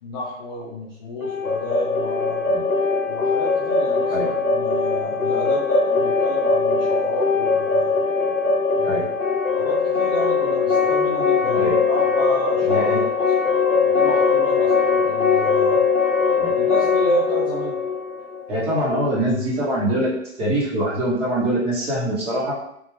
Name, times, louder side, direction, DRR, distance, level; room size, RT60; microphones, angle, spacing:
voice 1, 0.0-2.4 3.1-8.0 8.7-9.1 9.6-13.3 13.8-15.9 16.5-17.7, equal, 20° left, -8 dB, 0.4 m, -30 dB
sound 1, 1.2-19.0, left 4 dB, 90° left, 0.6 m, -21 dB
voice 2, 12.7-13.0 16.4-16.5 18.5-22.5, right 1 dB, 15° right, -7 dB, 0.9 m, -23 dB
3.4 x 2.4 x 3.2 m, 0.77 s
figure-of-eight pair, 120°, 39 cm